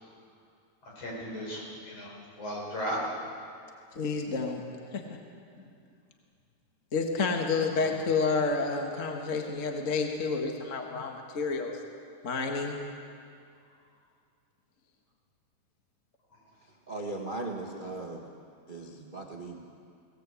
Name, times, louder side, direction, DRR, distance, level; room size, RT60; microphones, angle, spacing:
voice 1, 0.8-3.1 7.7-7.9, equal, 55° left, -3 dB, 6.3 m, -36 dB
voice 2, 3.9-4.6 4.9-5.0 5.6-5.7 6.9-11.8 12.2-12.8, left 4 dB, 35° left, 2 dB, 1.3 m, -29 dB
voice 3, 16.9-18.3 18.7-19.6, right 2 dB, 65° right, 0 dB, 0.4 m, -38 dB
19.0 x 18.5 x 8.3 m, 2.4 s
omnidirectional pair, 3.5 m